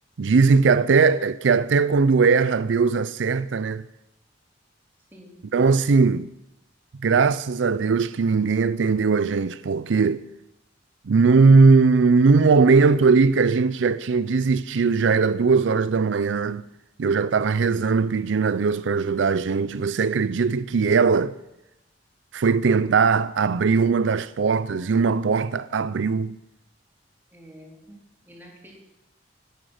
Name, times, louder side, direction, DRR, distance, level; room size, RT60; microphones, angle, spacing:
voice 1, 0.2-3.8 5.5-6.3 7.0-10.2 11.1-16.6 17.0-21.4 22.3-26.4, right 4 dB, 75° right, 0.5 m, -19 dB
voice 2, 27.3-28.0 28.2-28.7, equal, 10° right, 4.0 m, -47 dB
16.5 x 10.5 x 6.5 m
head